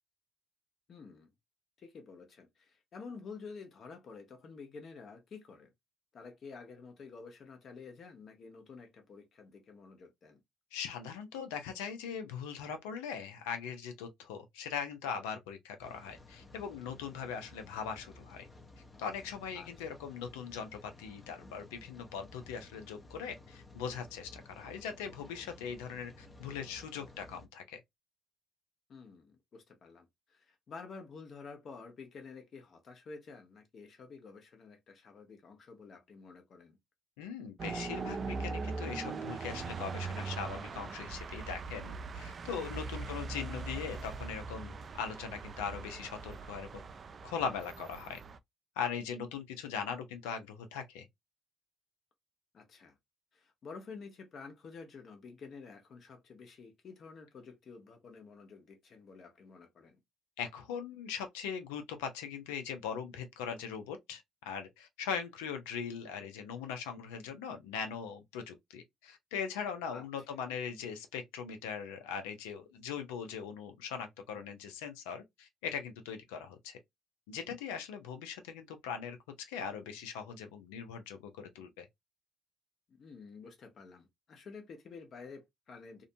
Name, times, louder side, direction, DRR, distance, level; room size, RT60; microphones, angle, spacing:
voice 1, 0.9-1.3 1.8-5.7 6.1-10.4 19.5-19.9 28.9-36.8 43.0-43.4 52.5-53.0 53.3-60.0 69.9-70.1 70.3-70.4 82.9-86.0, left 4 dB, 55° left, 0.9 m, -50 dB
voice 2, 10.7-18.5 19.0-27.8 37.2-46.8 47.2-48.2 48.8-51.1 60.4-76.8 77.3-81.9, left 7 dB, 85° left, 0.5 m, -40 dB
Rain, 15.8-27.5, left 2 dB, 30° left, 0.6 m, -55 dB
sound 1, 37.6-48.4, right 4 dB, 45° right, 0.3 m, -41 dB
2.5 x 2.2 x 2.6 m
hypercardioid pair, 55°, 0 cm